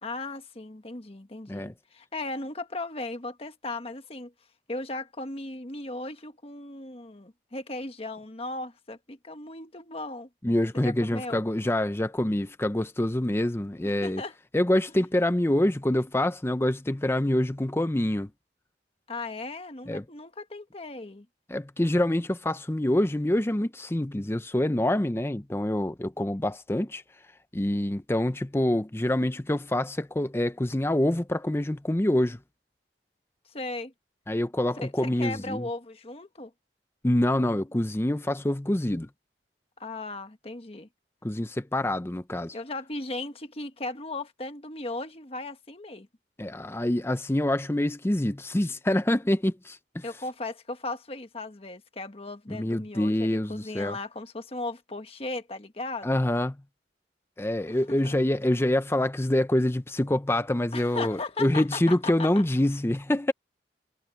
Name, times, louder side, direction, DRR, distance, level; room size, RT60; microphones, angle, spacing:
voice 1, 0.0-4.3 4.7-10.3 10.7-11.4 13.8-14.3 19.1-21.3 33.5-33.9 34.8-36.5 39.8-40.9 42.5-46.1 50.0-56.2 57.7-58.1 60.7-62.4, left 2 dB, 35° left, 1.4 m, -37 dB
voice 2, 10.4-14.2 14.5-18.3 19.9-20.0 21.5-27.0 27.5-32.4 34.3-35.7 37.0-39.1 41.2-42.5 46.4-50.0 52.5-54.0 56.0-56.6 57.4-63.3, left 1 dB, 15° left, 0.6 m, -26 dB
head